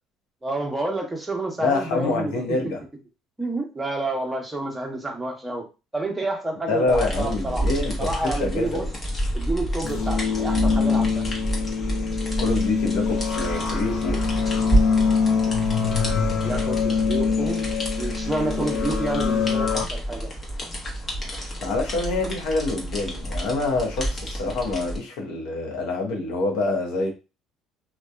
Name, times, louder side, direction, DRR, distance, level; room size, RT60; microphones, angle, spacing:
voice 1, 0.4-2.3 3.4-5.6 5.9-7.7 8.0-8.8 9.3-11.2 16.4-17.7 18.0-20.3, right 2 dB, 10° right, 0.8 m, -29 dB
voice 2, 1.6-2.8 6.7-8.9 12.4-14.3 21.2-21.3 21.6-27.1, left 3 dB, 85° left, 0.8 m, -26 dB
sound 1, 6.9-25.0, right 1 dB, 30° left, 0.9 m, -29 dB
sound 2, 9.8-19.8, left 5 dB, 50° left, 0.5 m, -24 dB
2.7 x 2.2 x 2.3 m
cardioid pair, 115°, 0 cm